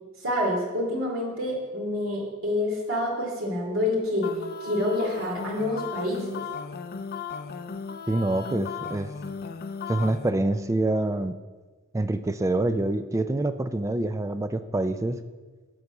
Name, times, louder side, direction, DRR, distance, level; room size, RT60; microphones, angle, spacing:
voice 1, 0.2-4.3 4.6-6.4, left 1 dB, 70° right, -1 dB, 2.6 m, -27 dB
sound 1, 4.2-10.3, left 5 dB, 45° left, 0.5 m, -36 dB
voice 2, 8.1-9.1 9.9-11.4 11.9-15.2, right 2 dB, 15° right, 10 dB, 0.3 m, -26 dB
11.0 x 5.3 x 7.0 m, 1.4 s
head